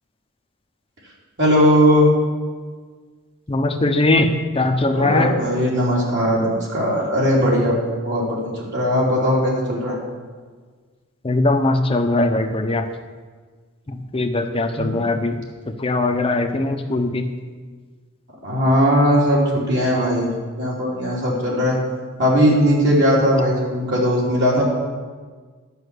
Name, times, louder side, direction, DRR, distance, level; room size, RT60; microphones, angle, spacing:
voice 1, 1.4-2.1 4.9-7.8 8.0-10.0 14.7-15.1 18.4-20.3 20.6-21.8 22.2-24.6, equal, 50° right, -5 dB, 2.9 m, -18 dB
voice 2, 3.5-5.3 11.2-12.9 13.9-15.4 15.8-17.3, left 2 dB, 25° left, 5 dB, 0.8 m, -20 dB
11.5 x 5.8 x 8.2 m, 1.5 s
head